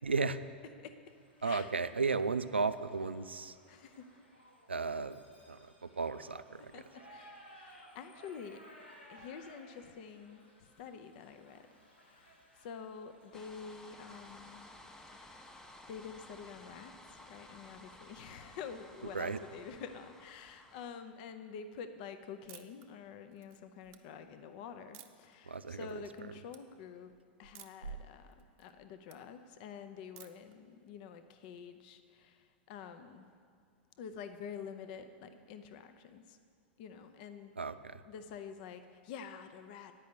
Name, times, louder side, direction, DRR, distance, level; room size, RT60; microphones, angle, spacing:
voice 1, 0.0-0.4 1.4-3.5 4.7-5.2 5.5-6.7 19.1-19.4 25.5-25.9 37.6-38.0, right 4 dB, 85° right, 12 dB, 0.4 m, -34 dB
Shout / Livestock farm animals working animals, 1.1-13.6, equal, 85° left, 1.8 m, -59 dB
voice 2, 1.4-1.7 3.7-4.1 6.7-8.6 9.1-11.6 12.0-14.7 15.1-15.6 15.9-27.1 27.4-33.4 34.0-36.4 36.8-37.7 38.1-39.9, left 6 dB, 50° left, 9 dB, 0.5 m, -48 dB
sound 1, 13.3-20.9, left 1 dB, 10° left, 0.7 m, -55 dB
sound 2, 22.5-22.9 23.3-24.0 24.9-25.3 25.8-26.2 26.5-26.6 27.5-27.9 28.3-29.2 30.2-30.5, right 12 dB, 40° right, 0.6 m, -55 dB
9.2 x 5.4 x 8.1 m, 2.2 s
figure-of-eight pair, 95°, 6 cm